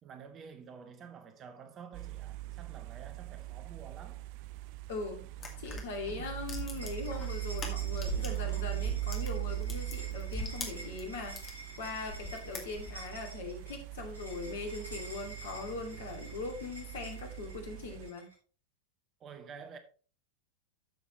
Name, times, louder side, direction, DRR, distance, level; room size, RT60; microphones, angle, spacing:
voice 1, 0.0-4.2 19.2-19.8, right 6 dB, 30° right, 1.1 m, -49 dB
sound 1, 1.9-18.1, right 17 dB, 45° right, 0.4 m, -40 dB
voice 2, 4.9-5.2 5.6-11.4 11.8-18.3, left 3 dB, 55° left, 2.5 m, -40 dB
sound 2, 5.4-8.5 8.8-11.6 12.0-13.1, left 3 dB, 25° left, 2.2 m, -42 dB
sound 3, 6.7-18.3, right 1 dB, 85° left, 4.7 m, -50 dB
13.0 x 6.2 x 3.1 m
figure-of-eight pair, 90°, 0 cm